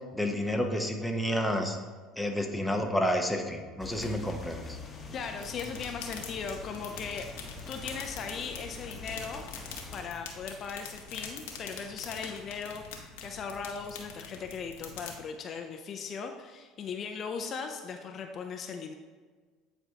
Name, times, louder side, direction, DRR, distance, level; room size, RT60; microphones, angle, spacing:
voice 1, 0.1-1.8 2.2-4.8, equal, 5° left, 3 dB, 0.8 m, -30 dB
sound 1, 3.8-10.1, left 3 dB, 30° left, 1.1 m, -44 dB
voice 2, 5.1-7.3 7.7-9.4 9.9-18.9, left 5 dB, 45° left, 5 dB, 0.5 m, -38 dB
sound 2, 5.3-15.1, left 6 dB, 90° left, 0.9 m, -45 dB
8.9 x 4.4 x 2.8 m, 1.5 s
supercardioid pair, 90°, 0 cm